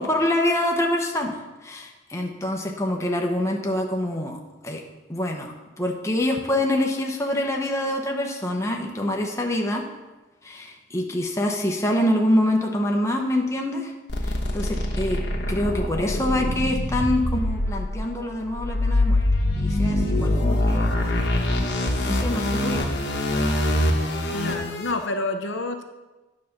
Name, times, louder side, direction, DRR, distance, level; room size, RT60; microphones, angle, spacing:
voice 1, 0.0-1.4 1.6-4.4 4.6-4.8 5.1-9.9 10.4-13.9 14.2-15.2 15.5-19.2 19.6-20.9 22.0-23.0, left 1 dB, 15° left, 1 dB, 0.8 m, -25 dB
sound 1, 14.1-24.9, left 1 dB, 60° left, 1.2 m, -24 dB
voice 2, 24.3-25.8, left 2 dB, 75° left, 6 dB, 0.7 m, -28 dB
9.4 x 4.2 x 6.5 m, 1.1 s
head